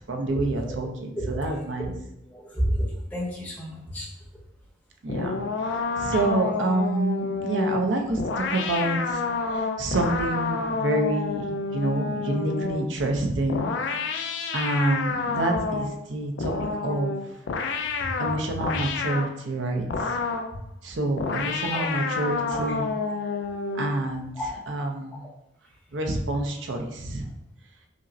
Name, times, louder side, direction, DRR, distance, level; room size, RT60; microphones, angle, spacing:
voice 1, 0.0-1.9 5.0-5.4 6.0-9.2 9.5-13.7 14.5-17.2 18.2-20.2 20.8-22.9 23.7-25.2 25.9-27.2, right 2 dB, 70° right, 3 dB, 0.5 m, -27 dB
voice 2, 2.3-4.1 21.7-21.8 22.5-22.6 24.4-24.5, equal, 10° left, -5 dB, 0.9 m, -30 dB
sound 1, 5.1-12.9 13.5-16.0 16.4-19.3 19.9-20.5 21.2-24.0, left 4 dB, 65° left, 0.3 m, -29 dB
5.0 x 2.0 x 2.6 m, 0.78 s
head